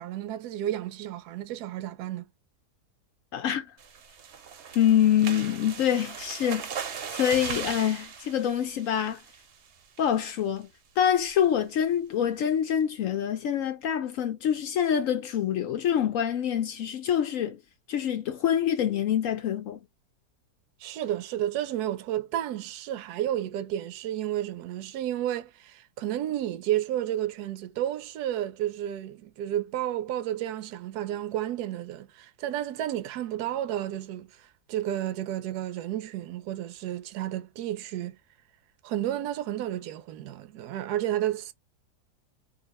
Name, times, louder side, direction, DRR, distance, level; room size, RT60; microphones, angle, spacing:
voice 1, 0.0-2.3 20.8-38.2 38.8-41.5, right 12 dB, 75° right, 1.1 m, -31 dB
voice 2, 3.3-3.7 4.7-6.7 7.1-9.2 10.0-10.7 11.0-17.6 17.9-19.8, left 9 dB, 65° left, 0.8 m, -25 dB
sound 1, 3.8-9.6 10.0-10.2 10.6-10.7 11.0-11.3, right 7 dB, 55° right, 0.8 m, -38 dB
2.7 x 2.7 x 4.1 m
omnidirectional pair, 1.8 m